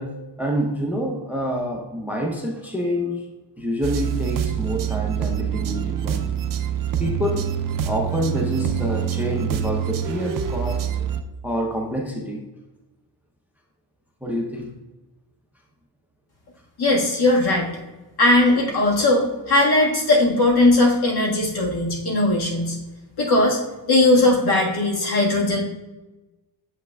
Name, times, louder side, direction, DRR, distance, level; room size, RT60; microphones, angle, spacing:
voice 1, 0.0-3.3 3.6-6.3 6.9-7.5 7.9-11.1 11.4-12.4 14.2-14.7, equal, 5° right, 1 dB, 0.6 m, -27 dB
sound 1, 3.8-11.2, right 9 dB, 50° right, 0.5 m, -25 dB
voice 2, 16.8-17.7 18.2-22.8 23.2-23.6 23.9-25.6, left 2 dB, 60° left, -1 dB, 1.6 m, -18 dB
7.3 x 5.7 x 2.3 m, 1.1 s
wide cardioid pair, 130°, 43 cm